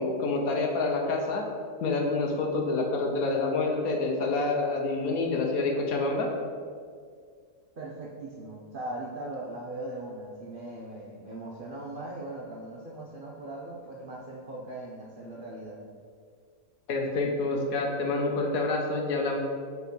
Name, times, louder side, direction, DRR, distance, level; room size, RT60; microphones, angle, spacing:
voice 1, 0.0-1.4 1.8-6.3 16.9-19.4, left 3 dB, 65° left, 1 dB, 1.1 m, -27 dB
voice 2, 7.8-15.8, right 1 dB, 60° right, -3 dB, 0.5 m, -39 dB
4.6 x 4.6 x 5.2 m, 2.1 s
omnidirectional pair, 1.8 m